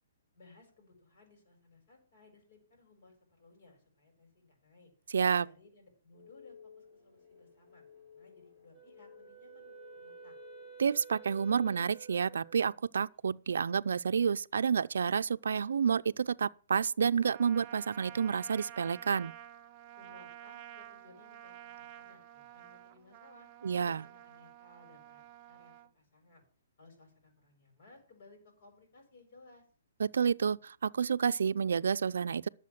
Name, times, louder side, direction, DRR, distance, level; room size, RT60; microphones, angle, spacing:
voice 1, 0.3-4.9 5.3-7.8 8.1-10.3 20.0-23.5 23.8-26.4 26.8-29.6, left 3 dB, 50° left, 6.9 m, -60 dB
voice 2, 5.1-5.5 10.8-19.3 23.6-24.0 30.0-32.5, right 6 dB, 80° right, 0.5 m, -29 dB
sound 1, 6.1-11.9, left 6 dB, 20° left, 6.1 m, -56 dB
Wind instrument woodwind instrument, 8.7-12.8, right 7 dB, 5° right, 3.2 m, -52 dB
Trumpet, 17.2-25.9, right 12 dB, 25° right, 0.8 m, -51 dB
11.5 x 7.1 x 7.4 m
hypercardioid pair, 155°, 0 cm